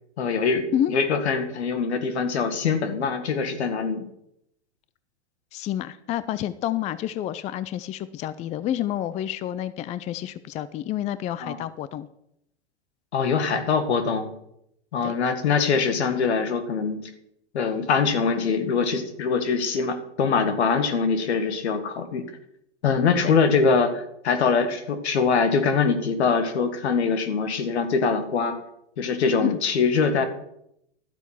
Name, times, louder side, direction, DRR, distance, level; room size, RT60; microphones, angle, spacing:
voice 1, 0.2-4.1 11.4-11.6 13.1-14.3 14.9-17.0 17.5-22.3 22.8-28.6 29.0-30.2, left 5 dB, 70° left, 8 dB, 1.9 m, -23 dB
voice 2, 5.5-12.1 15.0-15.1 23.2-23.3 29.4-29.6, left 11 dB, 20° left, 15 dB, 0.4 m, -29 dB
12.0 x 8.0 x 5.7 m, 0.78 s
hypercardioid pair, 105°, 34 cm